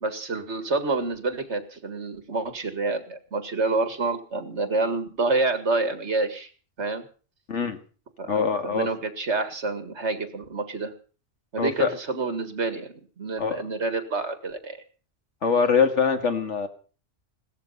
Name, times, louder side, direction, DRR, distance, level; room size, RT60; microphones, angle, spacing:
voice 1, 0.0-6.5 6.8-7.0 8.2-10.9 11.5-14.8, right 3 dB, 70° right, 10 dB, 2.2 m, -28 dB
voice 2, 8.3-8.9 11.6-11.9 13.4-13.6 15.4-16.7, left 5 dB, 80° left, 7 dB, 2.2 m, -23 dB
17.5 x 13.5 x 5.6 m, 0.39 s
omnidirectional pair, 1.2 m